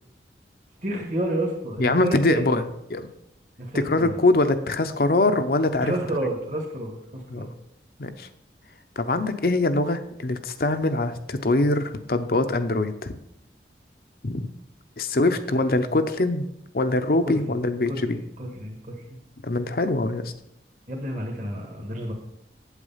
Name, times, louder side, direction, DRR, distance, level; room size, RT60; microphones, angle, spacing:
voice 1, 0.8-2.5 3.6-4.2 5.8-7.5 15.5-15.9 17.2-17.5 17.9-18.9 20.9-22.1, right 1 dB, 45° right, 0 dB, 1.7 m, -30 dB
voice 2, 1.8-3.1 3.7-5.9 7.3-7.5 8.0-8.3 9.0-13.1 14.2-14.5 15.0-16.5 16.7-18.2 19.4-20.3, left 2 dB, 55° left, 8 dB, 0.7 m, -23 dB
8.2 x 7.9 x 5.6 m, 0.78 s
head